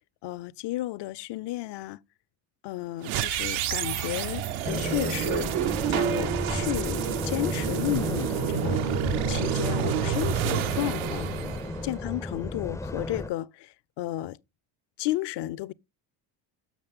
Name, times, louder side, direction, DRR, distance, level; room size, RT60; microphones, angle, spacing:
voice 1, 0.2-2.0 2.6-8.9 9.3-11.3 11.8-14.4 15.0-15.7, left 16 dB, 60° left, 0.6 m, -33 dB
sound 1, 3.0-12.2, right 11 dB, 80° right, 0.8 m, -29 dB
sound 2, 4.6-13.3, left 2 dB, 5° left, 0.4 m, -33 dB
7.4 x 6.4 x 3.5 m
supercardioid pair, 85°, 48 cm